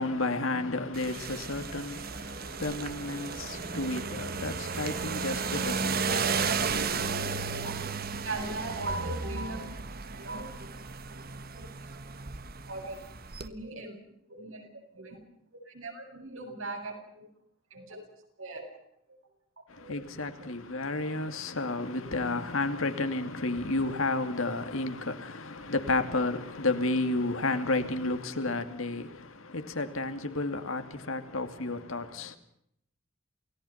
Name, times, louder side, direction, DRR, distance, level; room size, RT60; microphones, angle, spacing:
voice 1, 0.0-6.9 19.7-32.4, left 2 dB, 80° left, 2.5 m, -32 dB
sound 1, 0.9-13.5, right 5 dB, 45° right, 1.2 m, -34 dB
voice 2, 6.1-6.4 7.5-7.7 8.2-9.7 10.1-10.7 11.1-11.2 11.6-12.0 12.7-13.0 13.4-14.7 14.9-15.2 15.6-17.2 17.7-18.0 18.4-18.8 19.1-19.2 19.8-20.5, right 2 dB, 75° right, 7.6 m, -40 dB
29.0 x 18.0 x 5.8 m
head